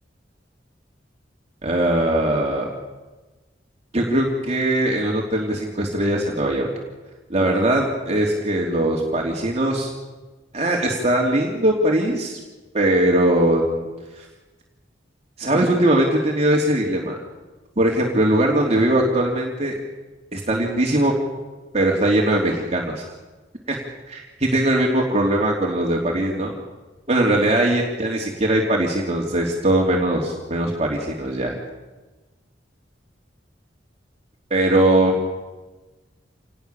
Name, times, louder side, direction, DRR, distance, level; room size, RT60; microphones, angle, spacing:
voice 1, 1.6-2.7 3.9-6.7 7.3-9.9 10.5-12.4 12.7-13.9 14.2-14.3 15.4-17.1 17.8-19.8 20.3-21.1 21.7-23.0 23.7-23.8 24.1-26.5 27.1-31.6 34.5-35.2, right 1 dB, 35° right, -1 dB, 3.1 m, -20 dB
28.0 x 19.5 x 7.1 m, 1.2 s
head